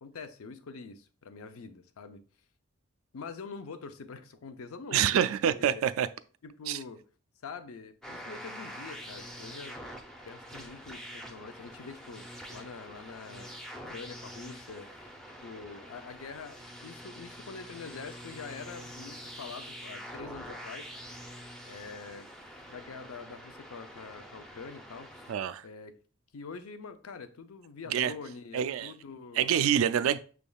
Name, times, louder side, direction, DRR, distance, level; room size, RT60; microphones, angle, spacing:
voice 1, 0.0-2.2 3.1-5.0 5.4-5.8 6.4-7.0 7.4-9.8 10.2-13.5 13.9-15.1 15.4-21.2 21.7-22.3 22.7-25.2 25.6-25.9 26.3-29.6, left 4 dB, 90° left, 0.5 m, -45 dB
voice 2, 4.9-6.1 6.7-6.8 25.3-25.6 27.9-28.1 28.5-28.9 29.3-30.2, right 9 dB, 75° right, 0.3 m, -26 dB
sound 1, 8.0-25.3, equal, ahead, 0.4 m, -46 dB
6.1 x 3.5 x 2.3 m
head